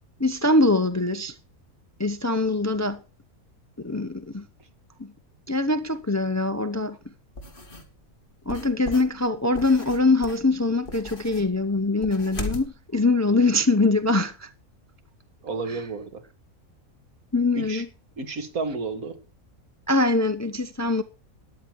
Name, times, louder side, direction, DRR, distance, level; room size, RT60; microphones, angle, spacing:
voice 1, 0.2-1.3 2.0-3.0 3.8-4.4 5.0-5.1 5.5-7.0 8.5-14.5 17.3-17.9 19.9-21.0, left 2 dB, 20° left, 0.5 m, -23 dB
sound 1, 7.4-7.9 8.5-12.7, left 2 dB, 40° left, 2.3 m, -37 dB
voice 2, 15.4-16.2 17.5-17.8 18.2-19.2, right 3 dB, 85° right, 2.3 m, -31 dB
13.5 x 10.0 x 4.7 m
omnidirectional pair, 1.5 m